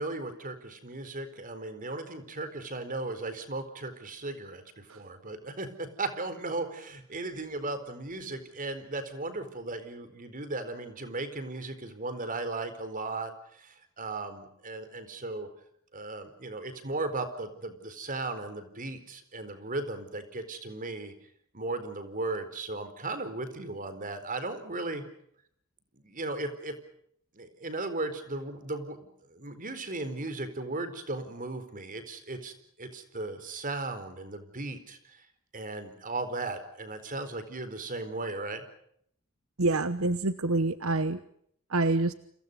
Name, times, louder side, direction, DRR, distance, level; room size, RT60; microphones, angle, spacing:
voice 1, 0.0-15.5 15.9-21.1 21.5-25.0 25.9-26.7 27.3-29.0 29.3-32.5 32.8-35.3 35.5-38.6, right 2 dB, 40° right, 10 dB, 4.3 m, -36 dB
voice 2, 39.6-41.2 41.7-42.1, right 2 dB, 75° right, 12 dB, 1.1 m, -26 dB
29.5 x 27.5 x 5.4 m, 0.70 s
head